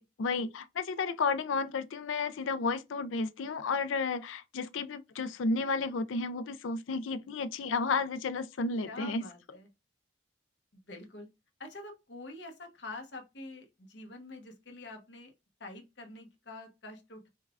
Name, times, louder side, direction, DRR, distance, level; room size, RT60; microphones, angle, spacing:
voice 1, 0.2-9.2, left 4 dB, 80° left, 0.4 m, -32 dB
voice 2, 8.9-9.7 10.7-11.3 11.6-15.3 15.6-17.3, left 2 dB, 65° left, 1.0 m, -46 dB
5.3 x 2.3 x 2.4 m
head